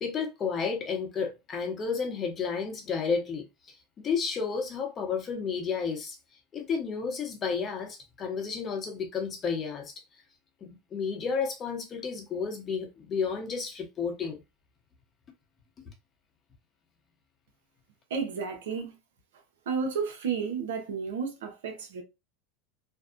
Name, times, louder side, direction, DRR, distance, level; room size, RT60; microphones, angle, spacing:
voice 1, 0.0-3.5 4.0-6.2 6.5-9.9 10.6-14.4, left 5 dB, 35° left, 0.9 m, -31 dB
voice 2, 18.1-19.0 19.7-22.0, right 5 dB, 85° right, 0.8 m, -32 dB
2.6 x 2.2 x 2.5 m
supercardioid pair, 110°, 0 cm